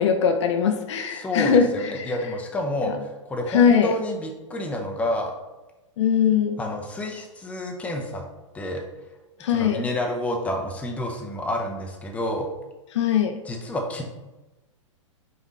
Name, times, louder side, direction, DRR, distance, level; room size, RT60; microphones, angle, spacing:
voice 1, 0.0-1.7 1.9-2.1 2.9-3.0 3.5-3.9 6.0-6.6 9.4-9.8 12.9-13.3, left 7 dB, 60° left, 5 dB, 0.5 m, -20 dB
voice 2, 1.1-5.3 6.6-8.2 8.5-8.8 9.5-12.5 13.5-14.0, left 1 dB, 10° left, 1 dB, 0.6 m, -29 dB
5.0 x 2.5 x 3.2 m, 1.1 s
figure-of-eight pair, 110°, 17 cm